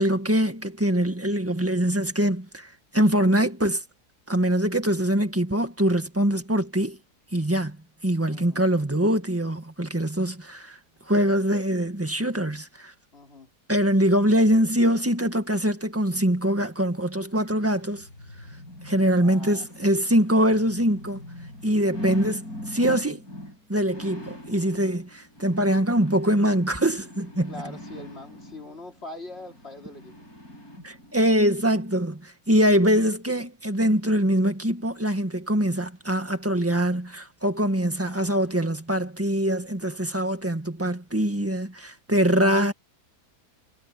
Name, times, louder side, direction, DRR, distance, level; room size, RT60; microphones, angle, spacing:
voice 1, 0.0-3.8 4.3-7.0 7.3-7.8 8.0-10.8 11.1-12.9 13.7-18.1 18.8-21.2 21.6-23.2 23.7-27.5 30.8-42.7, equal, 10° right, 1.7 m, -23 dB
voice 2, 8.3-8.7 13.1-13.5 19.2-20.1 27.5-30.3 38.0-38.6, left 2 dB, 40° left, 3.9 m, -43 dB
sound 1, 17.4-31.3 31.8-31.9, left 1 dB, 65° left, 8.1 m, -42 dB
omnidirectional pair, 1.7 m